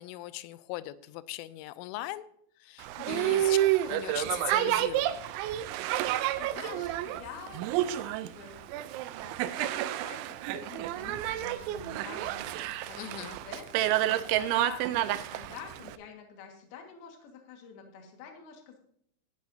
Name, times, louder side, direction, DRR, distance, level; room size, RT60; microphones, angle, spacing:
voice 1, 0.0-2.3 2.6-3.6 3.8-5.3 13.0-13.4, left 16 dB, 85° left, 15 dB, 3.1 m, -39 dB
Boat Water vehicle, 2.8-16.0, right 13 dB, 80° right, 2.9 m, -30 dB
voice 2, 3.0-3.4 6.4-7.7 8.0-8.6 9.2-13.8 14.1-18.8, left 6 dB, 60° left, 3 dB, 3.2 m, -47 dB
16.5 x 10.5 x 2.7 m, 0.68 s
omnidirectional pair, 5.7 m